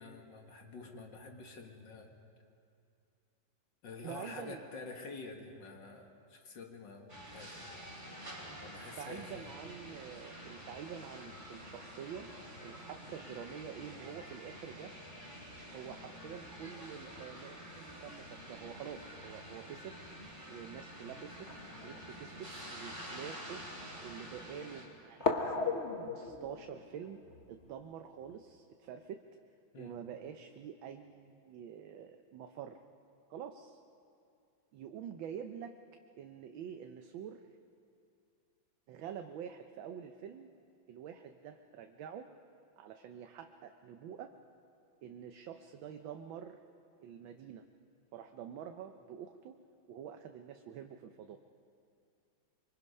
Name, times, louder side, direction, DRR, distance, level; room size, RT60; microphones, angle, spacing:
voice 1, 0.0-2.1 3.8-8.0 8.6-9.5 29.7-30.0, left 3 dB, 65° left, 3 dB, 2.4 m, -48 dB
voice 2, 4.0-4.6 5.5-5.6 8.5-12.3 12.6-14.9 15.7-20.0 20.5-21.5 21.8-23.6 24.0-27.2 27.5-29.2 29.8-32.8 33.3-33.8 34.7-35.8 36.2-37.4 38.9-40.5 40.9-42.3 42.8-44.3 45.0-46.6 47.0-47.6 48.1-49.6 49.9-51.4, right 8 dB, 75° right, 6 dB, 1.5 m, -47 dB
sound 1, 7.1-24.9, equal, 20° right, 3.9 m, -48 dB
sound 2, 20.0-20.1 21.3-22.6 23.3-23.4 25.2-28.4, left 4 dB, 40° left, 1.4 m, -38 dB
25.0 x 24.0 x 5.5 m, 2.4 s
omnidirectional pair, 2.2 m